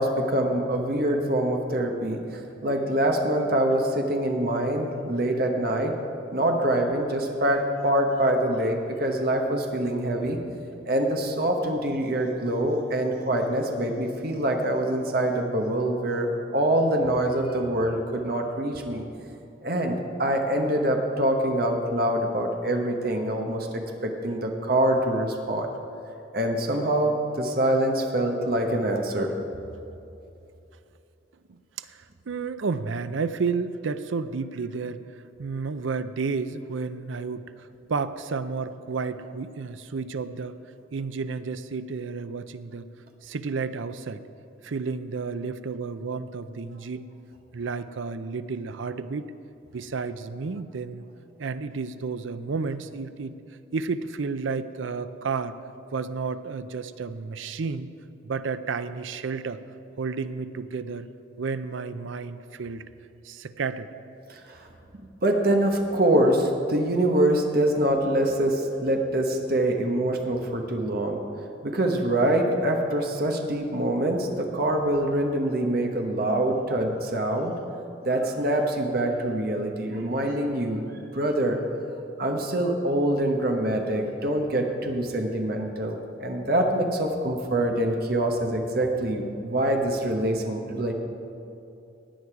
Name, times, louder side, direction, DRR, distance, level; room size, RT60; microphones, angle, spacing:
voice 1, 0.0-6.0 6.3-10.4 10.8-16.3 16.5-19.0 19.6-25.7 26.3-29.3 64.3-64.7 65.2-71.2 71.6-77.5 78.0-80.8 81.1-81.6 82.2-90.9, right 1 dB, 50° right, 2 dB, 1.1 m, -25 dB
voice 2, 31.5-40.6 40.9-42.8 43.2-44.2 44.6-47.1 47.5-49.3 49.7-51.0 51.4-53.3 53.7-55.5 55.9-57.9 58.2-59.6 60.0-61.1 61.4-62.8 63.2-63.9, right 4 dB, 80° right, 12 dB, 0.5 m, -31 dB
17.0 x 9.5 x 4.8 m, 2.7 s
head